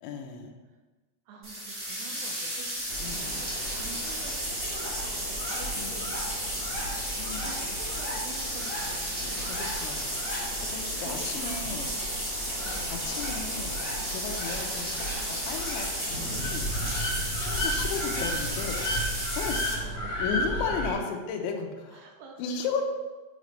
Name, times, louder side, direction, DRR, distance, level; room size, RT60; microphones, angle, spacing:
voice 1, 0.0-0.5 3.0-3.4 5.8-6.1 7.2-7.7 9.3-10.1 10.4-11.9 12.7-15.9 16.2-18.8 19.4-22.1 22.4-22.8, left 6 dB, 90° left, 3 dB, 3.0 m, -35 dB
voice 2, 1.3-3.5 3.8-6.7 7.3-9.5 11.0-12.1 12.7-12.9 17.8-18.9 19.4-20.5 21.9-22.6, right 5 dB, 80° right, 1 dB, 2.5 m, -47 dB
sound 1, 1.4-19.7, equal, 55° right, 0.5 m, -33 dB
sound 2, 2.9-20.9, equal, 50° left, 2.3 m, -35 dB
sound 3, 16.0-19.7, left 1 dB, 65° left, 3.6 m, -42 dB
7.5 x 3.2 x 5.1 m, 1.3 s
omnidirectional pair, 5.1 m